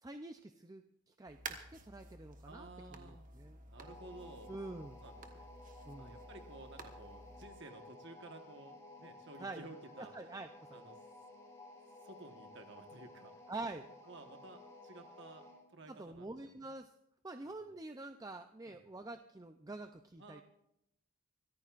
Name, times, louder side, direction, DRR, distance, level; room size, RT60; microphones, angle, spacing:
voice 1, 0.0-3.6 4.5-5.0 5.9-6.2 9.4-9.6 10.0-10.7 13.5-13.9 15.9-16.9 17.2-20.4, right 2 dB, 15° right, 7 dB, 0.5 m, -47 dB
sound 1, 1.3-7.5, right 3 dB, 35° right, 1.3 m, -52 dB
voice 2, 2.4-3.3 3.6-5.4 6.0-10.4 10.7-11.0 12.0-13.3 14.1-16.7 18.7-18.8 20.2-20.4, right 2 dB, 55° right, 5 dB, 1.4 m, -54 dB
sound 2, 3.8-15.6, left 2 dB, 15° left, 4.4 m, -55 dB
25.0 x 14.0 x 2.5 m, 0.82 s
head